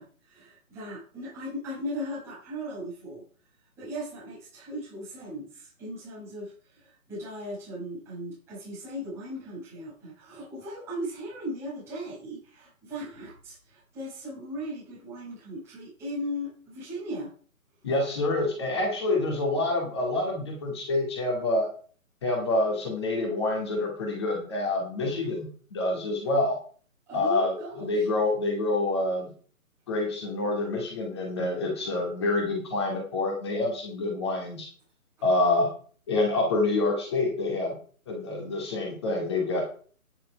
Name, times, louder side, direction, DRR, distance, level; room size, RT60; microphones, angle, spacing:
voice 1, 0.0-3.2 3.8-17.3 25.0-25.4 27.1-28.1, equal, 5° right, -10 dB, 5.3 m, -38 dB
voice 2, 17.8-21.7 22.2-26.6 27.1-29.3 29.9-34.7 35.2-35.7 36.1-37.7 38.1-39.7, left 2 dB, 20° left, -1 dB, 2.3 m, -27 dB
10.0 x 8.1 x 5.2 m, 0.44 s
hypercardioid pair, 170°, 43 cm